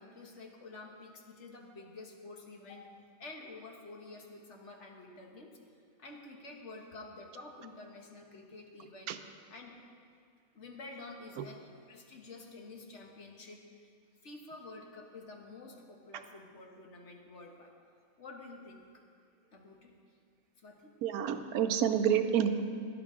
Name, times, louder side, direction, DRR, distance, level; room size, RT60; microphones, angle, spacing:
voice 1, 0.0-2.9 3.2-5.6 6.0-9.1 9.5-9.8 10.5-13.9 14.2-17.7 18.2-19.0 19.5-19.9 20.6-20.9, left 3 dB, 55° left, 1 dB, 1.5 m, -49 dB
voice 2, 21.0-22.6, right 8 dB, 90° right, 9 dB, 1.2 m, -28 dB
16.0 x 11.5 x 3.7 m, 2.3 s
omnidirectional pair, 1.5 m